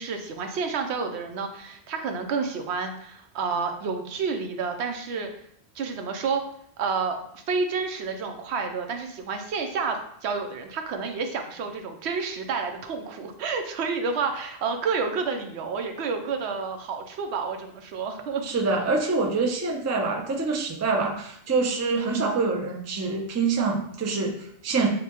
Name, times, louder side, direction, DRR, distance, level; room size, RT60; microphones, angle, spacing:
voice 1, 0.0-5.3 5.7-6.4 6.8-18.4, right 5 dB, 85° right, 5 dB, 0.9 m, -30 dB
voice 2, 18.5-24.9, right 4 dB, 25° right, 1 dB, 0.3 m, -25 dB
6.5 x 2.2 x 2.9 m, 0.70 s
omnidirectional pair, 1.1 m